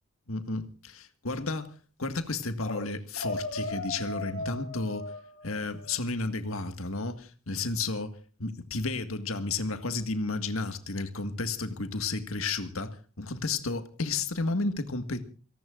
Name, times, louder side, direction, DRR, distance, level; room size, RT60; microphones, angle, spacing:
voice 1, 0.3-5.1 5.4-15.2, left 3 dB, 75° left, 1.8 m, -32 dB
sound 1, 2.6-2.8 3.2-5.9, left 2 dB, 60° left, 7.6 m, -37 dB
28.0 x 18.0 x 2.5 m
head